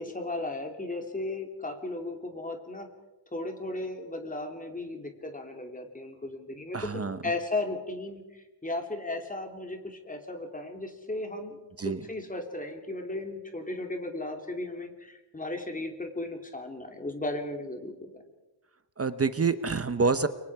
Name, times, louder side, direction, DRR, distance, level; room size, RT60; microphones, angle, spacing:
voice 1, 0.0-2.9 3.3-11.6 11.8-18.2, left 2 dB, 20° left, 4 dB, 3.0 m, -35 dB
voice 2, 6.7-7.2 11.8-12.0 19.0-20.3, right 4 dB, 35° right, 11 dB, 1.0 m, -27 dB
30.0 x 23.5 x 4.9 m, 1.1 s
wide cardioid pair, 145°, 43 cm